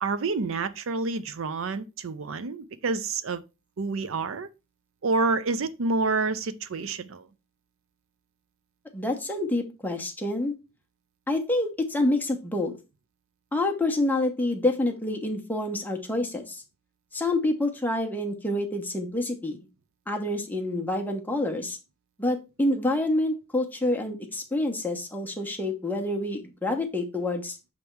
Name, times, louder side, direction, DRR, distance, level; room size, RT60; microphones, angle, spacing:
voice 1, 0.0-3.4 3.8-4.5 5.0-7.3, right 3 dB, 75° right, 0.5 m, -28 dB
voice 2, 8.9-10.5 11.3-12.7 13.5-16.6 17.1-19.6 20.1-21.8 22.2-27.6, left 1 dB, 10° left, 1.0 m, -27 dB
6.6 x 3.5 x 4.5 m
head